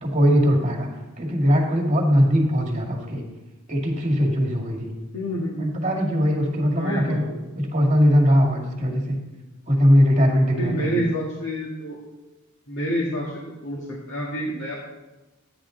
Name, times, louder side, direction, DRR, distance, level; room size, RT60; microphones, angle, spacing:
voice 1, 0.0-0.9 1.2-3.2 3.7-4.9 5.6-7.2 7.6-9.2 9.7-11.0, equal, 35° right, -1 dB, 2.1 m, -20 dB
voice 2, 5.1-5.7 6.8-7.4 10.5-12.0 12.7-14.7, equal, 60° left, -5 dB, 1.8 m, -28 dB
13.0 x 9.8 x 3.8 m, 1.1 s
head